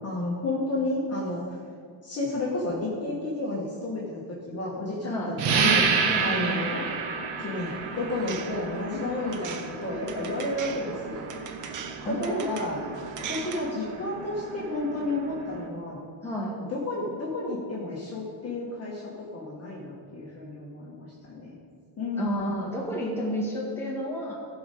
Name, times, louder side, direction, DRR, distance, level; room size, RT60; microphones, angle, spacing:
voice 1, 0.0-1.6 2.0-5.8 6.2-6.9 7.4-11.6 12.0-13.0 13.3-16.0 16.6-21.5 22.0-22.7, left 2 dB, 30° left, -5 dB, 1.5 m, -31 dB
voice 2, 5.0-5.4 6.0-6.5 9.2-9.3 12.0-12.4 16.2-16.6 22.2-24.3, equal, 5° left, -5 dB, 2.0 m, -31 dB
sound 1, 5.4-15.7, right 5 dB, 70° right, 1.1 m, -30 dB
sound 2, 7.6-13.7, right 7 dB, 40° right, 0.6 m, -41 dB
15.0 x 5.1 x 4.2 m, 2.1 s
cardioid pair, 145°, 49 cm